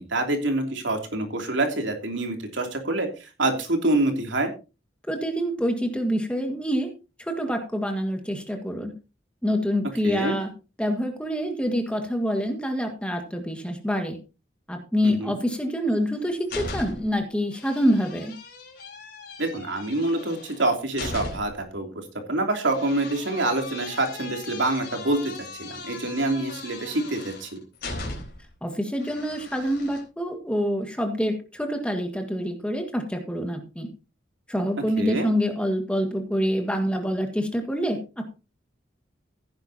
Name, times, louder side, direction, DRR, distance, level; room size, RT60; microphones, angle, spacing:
voice 1, 0.0-4.5 10.0-10.4 15.0-15.3 19.4-21.9 22.3-25.2 25.6-27.5 35.0-35.3, right 2 dB, 80° right, 4 dB, 2.9 m, -26 dB
voice 2, 5.1-6.9 7.2-8.9 9.4-10.5 10.8-14.2 14.7-18.3 28.6-33.9 34.5-38.3, equal, 5° left, 5 dB, 1.7 m, -26 dB
sound 1, 15.9-17.2 17.5-21.7 22.7-28.5 29.0-30.0, left 3 dB, 55° left, 4.2 m, -38 dB
16.0 x 9.7 x 2.8 m, 0.31 s
head